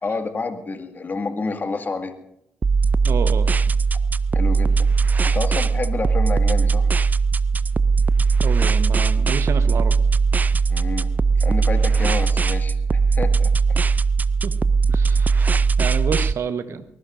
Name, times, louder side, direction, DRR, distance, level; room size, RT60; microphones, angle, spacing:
voice 1, 0.0-2.1 4.3-4.9 5.2-6.9 10.7-11.1 11.4-13.5, left 3 dB, 35° left, 6 dB, 2.0 m, -29 dB
sound 1, 2.6-16.3, right 4 dB, 30° right, 0.5 m, -19 dB
voice 2, 3.0-3.5 8.4-10.0 14.4-14.5 14.9-16.8, right 7 dB, 55° right, 11 dB, 1.2 m, -29 dB
23.0 x 20.5 x 2.6 m, 0.78 s
figure-of-eight pair, 45°, 6 cm